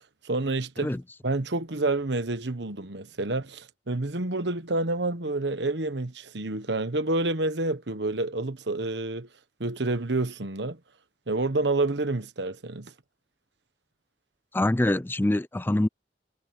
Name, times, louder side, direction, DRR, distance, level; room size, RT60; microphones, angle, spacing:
voice 1, 0.2-0.9 1.2-9.3 9.6-10.8 11.3-12.9, right 2 dB, 70° right, 1.3 m, -28 dB
voice 2, 14.5-15.9, left 1 dB, 10° left, 0.4 m, -24 dB
head